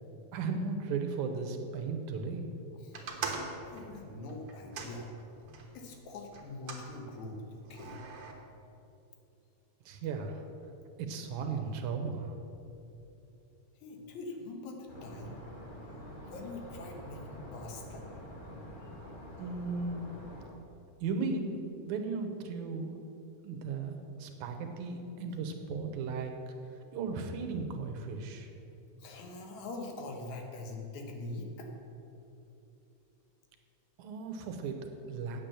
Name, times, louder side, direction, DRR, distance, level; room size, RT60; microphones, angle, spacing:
voice 1, 0.3-2.6 9.9-10.4 11.0-12.4 19.4-20.1 21.0-21.6 21.8-23.0 23.4-26.3 26.7-28.5 34.0-35.4, right 4 dB, 80° right, 5 dB, 2.3 m, -36 dB
sound 1, 2.9-5.7 6.3-6.9 7.7-8.3, right 5 dB, 60° right, 1.8 m, -41 dB
voice 2, 3.7-5.1 5.7-8.0 12.5-12.6 13.8-15.4 16.3-18.1 29.0-31.7, left 2 dB, 75° left, 3 dB, 2.5 m, -43 dB
sound 2, 14.9-20.5, equal, 25° left, 1.2 m, -47 dB
8.9 x 8.2 x 6.8 m, 2.8 s
omnidirectional pair, 3.4 m